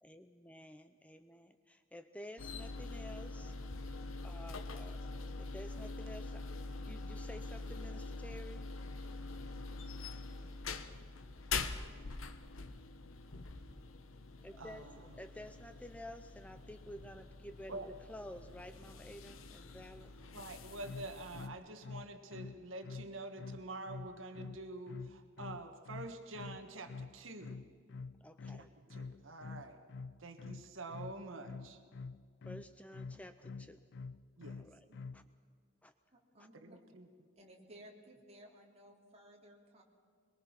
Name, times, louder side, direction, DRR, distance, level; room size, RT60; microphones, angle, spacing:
voice 1, 0.0-3.6 4.2-6.5 6.8-8.6 14.4-20.1 28.2-28.7 32.4-33.8 34.5-34.9 35.1-35.2 35.8-35.9 36.4-36.5, left 1 dB, 5° left, 9 dB, 0.6 m, -51 dB
sound 1, 2.4-21.5, left 3 dB, 85° left, 1.2 m, -44 dB
voice 2, 14.6-15.0 17.7-17.9 20.3-27.5 28.6-29.8 30.2-31.8 34.4-35.0 36.5-37.1, right 2 dB, 75° right, 6 dB, 1.6 m, -47 dB
sound 2, 20.8-35.3, left 4 dB, 60° left, 0.4 m, -47 dB
voice 3, 36.1-36.8 37.4-39.8, right 1 dB, 30° right, 0 dB, 3.3 m, -58 dB
23.0 x 22.5 x 6.0 m, 2.1 s
head